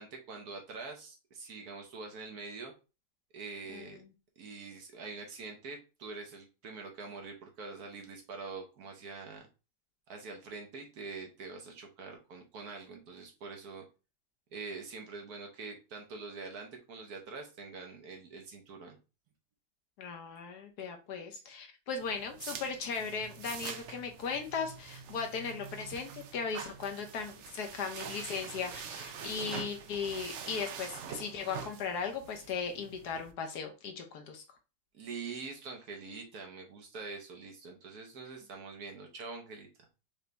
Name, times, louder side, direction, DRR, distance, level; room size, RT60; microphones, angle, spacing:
voice 1, 0.0-2.7 3.3-4.0 4.4-9.5 10.1-13.8 14.5-19.0 34.9-39.7, right 4 dB, 65° right, 3 dB, 1.4 m, -44 dB
voice 2, 3.7-4.1 20.0-34.4, left 5 dB, 70° left, 4 dB, 1.3 m, -37 dB
sound 1, 22.0-33.3, right 7 dB, 85° right, 0.6 m, -45 dB
5.1 x 2.7 x 3.3 m, 0.30 s
omnidirectional pair, 1.9 m